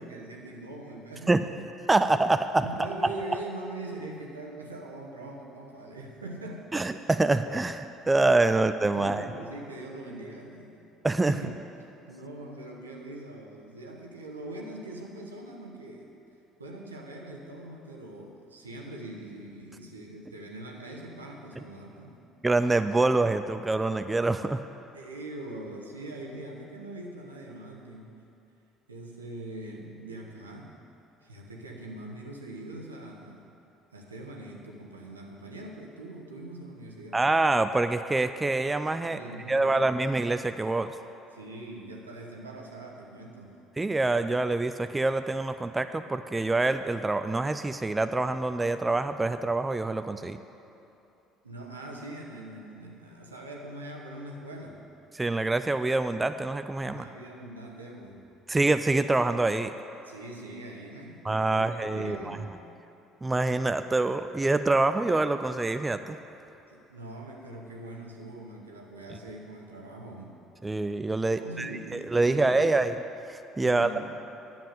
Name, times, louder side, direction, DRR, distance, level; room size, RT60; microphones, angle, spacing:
voice 1, 0.0-1.6 2.6-6.7 8.9-10.9 11.3-11.5 12.1-16.1 16.6-22.3 24.9-28.2 28.9-30.8 31.2-33.5 33.9-37.3 39.0-39.9 41.3-43.5 51.4-54.9 56.9-58.2 60.0-62.5 66.7-70.4 71.3-72.8 73.6-74.0, right 1 dB, 85° right, -1 dB, 1.1 m, -42 dB
voice 2, 1.9-2.9 6.7-9.2 11.0-11.3 22.4-24.6 37.1-39.2 39.5-40.9 43.8-50.4 55.1-57.0 58.5-59.7 61.2-62.4 63.2-66.2 70.6-73.0 73.3-73.9, right 2 dB, 15° right, 9 dB, 0.4 m, -26 dB
10.5 x 7.1 x 7.6 m, 2.8 s
figure-of-eight pair, 55°, 0 cm